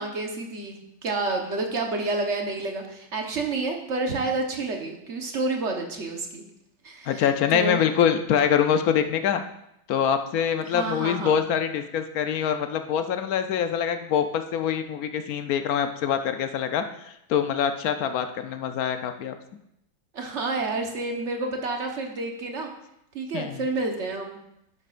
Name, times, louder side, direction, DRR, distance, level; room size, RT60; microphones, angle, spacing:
voice 1, 0.0-6.4 6.8-7.8 10.7-11.4 20.1-22.7 23.1-24.4, right 3 dB, 40° right, 2 dB, 1.2 m, -29 dB
voice 2, 7.1-9.4 9.9-19.4 23.3-23.6, left 8 dB, 70° left, 8 dB, 0.8 m, -24 dB
11.0 x 9.9 x 2.5 m, 0.80 s
omnidirectional pair, 2.2 m